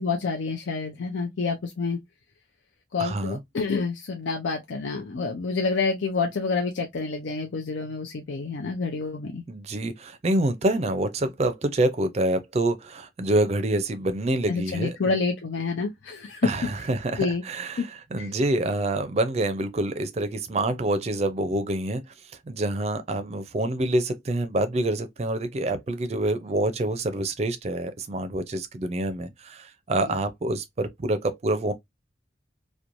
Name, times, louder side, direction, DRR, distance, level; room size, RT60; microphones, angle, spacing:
voice 1, 0.0-2.0 2.9-9.4 14.5-16.5 17.2-17.4 17.8-17.9 18.2-18.3, left 4 dB, 85° left, 0.5 m, -28 dB
voice 2, 3.0-3.4 9.5-15.2 16.4-22.0 22.5-31.7, right 1 dB, 35° right, 0.4 m, -26 dB
3.0 x 2.1 x 2.5 m
head